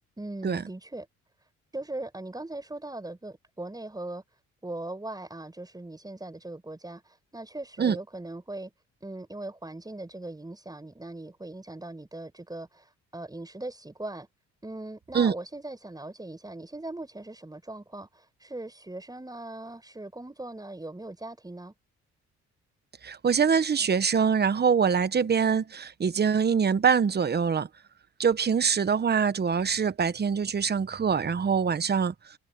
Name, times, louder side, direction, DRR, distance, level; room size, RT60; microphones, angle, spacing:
voice 1, 0.2-1.1 1.7-4.2 4.6-8.7 9.0-14.3 14.6-21.7, right 2 dB, 15° right, 6.5 m, -39 dB
voice 2, 23.0-27.7 28.2-32.1, right 6 dB, 35° right, 1.2 m, -24 dB
cardioid pair, 90°, 30 cm